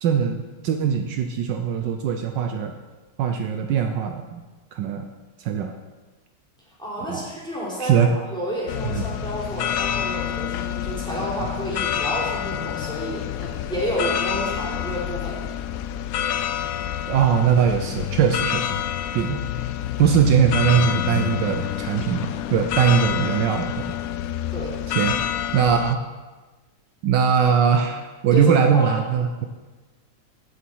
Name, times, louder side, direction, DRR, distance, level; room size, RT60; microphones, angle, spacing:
voice 1, 0.0-2.7 3.2-4.4 4.7-5.1 5.4-5.7 7.1-7.2 7.8-8.1 8.9-9.0 17.1-18.8 19.1-19.4 20.0-23.7 24.9-25.2 25.5-26.0 27.0-29.4, right 7 dB, 75° right, 5 dB, 1.3 m, -21 dB
voice 2, 6.8-15.4 24.5-24.8 28.3-28.9, equal, ahead, -6 dB, 3.7 m, -30 dB
sound 1, 8.7-25.9, left 10 dB, 85° left, 0.7 m, -28 dB
16.5 x 7.0 x 4.6 m, 1.3 s
omnidirectional pair, 2.1 m